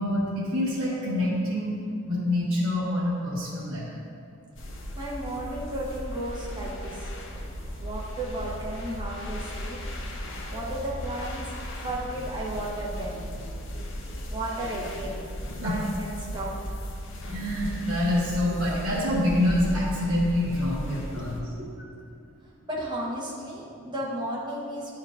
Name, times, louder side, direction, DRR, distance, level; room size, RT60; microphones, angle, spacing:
voice 1, 0.0-1.8 2.0-4.0 15.6-15.8 17.3-21.4, left 1 dB, 70° right, -9 dB, 1.2 m, -26 dB
sound 1, 4.6-21.4, equal, 60° left, 0.7 m, -36 dB
voice 2, 5.0-7.1 7.8-9.8 10.5-13.3 14.3-15.2 15.6-16.8 20.9-21.8 22.4-24.9, right 1 dB, 20° right, -6 dB, 1.1 m, -34 dB
10.0 x 4.5 x 2.5 m, 2.4 s
head